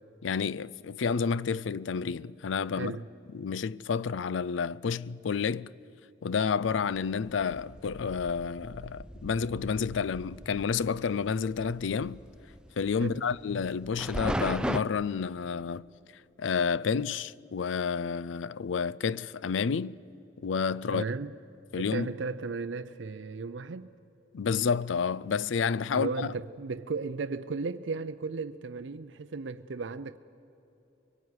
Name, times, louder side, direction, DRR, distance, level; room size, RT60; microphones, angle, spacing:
voice 1, 0.2-2.9 3.3-5.7 6.2-12.2 12.8-15.9 16.4-20.0 20.4-21.0 21.7-22.1 24.3-26.3, left 6 dB, 80° left, 0.4 m, -30 dB
voice 2, 2.7-3.1 13.0-13.3 20.9-21.4 21.8-23.9 25.9-30.2, right 4 dB, 75° right, 0.5 m, -35 dB
sound 1, 6.6-14.8, equal, 5° right, 0.4 m, -38 dB
23.5 x 18.5 x 9.6 m
head